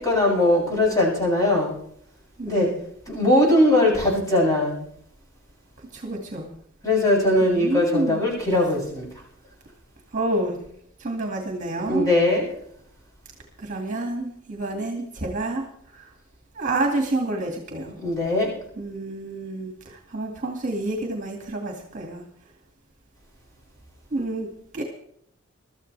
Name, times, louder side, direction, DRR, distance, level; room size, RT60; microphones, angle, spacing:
voice 1, 0.0-1.7 2.5-2.7 3.1-4.9 6.8-9.1 11.9-12.5 18.0-18.5, left 1 dB, 15° left, -4 dB, 7.6 m, -20 dB
voice 2, 2.4-2.8 5.9-6.5 7.4-8.2 10.1-10.6 11.0-12.1 13.6-15.6 15.9-16.1 16.5-17.9 18.8-22.2 24.1-24.5 24.7-24.8, right 2 dB, 35° right, 2 dB, 2.2 m, -28 dB
23.0 x 13.5 x 3.4 m, 0.69 s
head